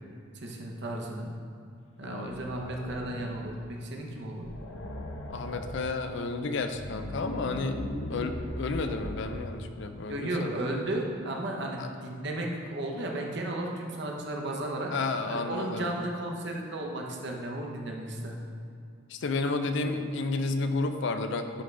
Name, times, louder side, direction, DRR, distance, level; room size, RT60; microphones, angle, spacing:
voice 1, 0.3-1.3 2.0-4.5 10.1-14.9 15.3-18.4, right 1 dB, 60° right, 0 dB, 0.9 m, -34 dB
voice 2, 2.0-2.4 5.3-7.8 8.1-10.6 11.8-11.9 14.9-15.9 19.1-21.6, left 3 dB, 60° left, 8 dB, 0.4 m, -31 dB
sound 1, 2.2-3.7 4.1-4.2 4.4-6.0 6.6-9.7, left 1 dB, 90° left, 0.8 m, -39 dB
11.0 x 3.8 x 3.3 m, 2.4 s
head